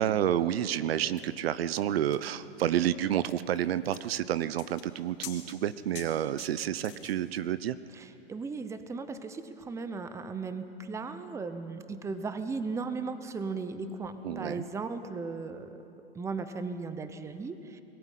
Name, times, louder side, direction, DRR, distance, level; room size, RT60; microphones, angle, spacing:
voice 1, 0.0-7.8 14.2-14.7, right 11 dB, 65° right, 16 dB, 0.8 m, -29 dB
sound 1, 1.2-7.4, left 11 dB, 55° left, 3.3 m, -48 dB
voice 2, 7.9-15.7 16.1-17.8, right 4 dB, 10° right, 10 dB, 0.8 m, -36 dB
22.0 x 14.0 x 9.2 m, 2.8 s
hypercardioid pair, 130°, 32 cm